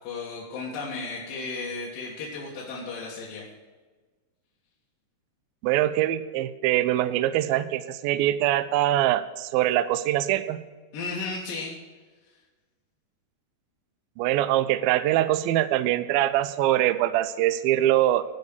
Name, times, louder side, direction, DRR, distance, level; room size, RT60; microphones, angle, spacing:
voice 1, 0.0-3.5 10.9-11.7, left 3 dB, 60° left, -5 dB, 2.9 m, -34 dB
voice 2, 5.6-10.6 14.2-18.2, right 13 dB, 90° right, 11 dB, 2.1 m, -23 dB
13.5 x 5.4 x 8.2 m, 1.3 s
omnidirectional pair, 4.9 m